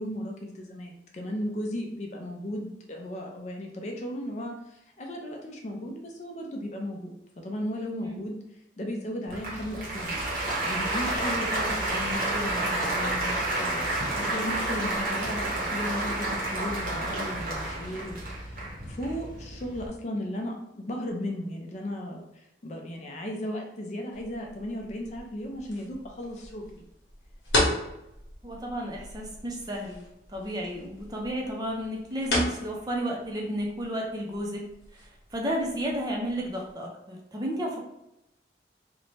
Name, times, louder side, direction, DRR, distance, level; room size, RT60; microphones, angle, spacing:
voice 1, 0.0-7.1 7.4-8.4 8.8-10.2 10.6-13.9 14.2-26.8, equal, 40° left, 1 dB, 0.4 m, -35 dB
Applause, 9.3-19.9, right 2 dB, 50° right, 0.7 m, -30 dB
sound 1, 24.1-36.7, left 1 dB, 75° left, 0.9 m, -36 dB
voice 2, 28.4-37.8, equal, 20° right, -1 dB, 0.4 m, -33 dB
2.6 x 2.1 x 3.1 m, 0.86 s
head